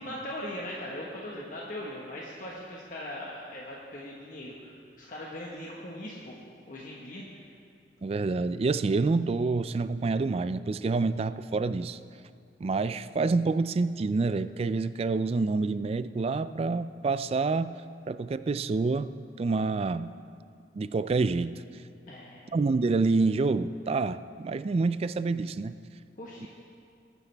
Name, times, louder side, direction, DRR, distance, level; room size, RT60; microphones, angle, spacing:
voice 1, 0.0-6.4 6.7-7.2 22.1-22.5 26.2-26.5, left 1 dB, 50° left, -4 dB, 1.3 m, -40 dB
voice 2, 8.0-12.0 12.6-17.8 18.1-19.1 19.4-20.1 20.8-21.6 22.5-25.8 26.4-26.5, right 3 dB, 35° right, 14 dB, 0.3 m, -27 dB
21.0 x 9.6 x 3.4 m, 2.3 s
head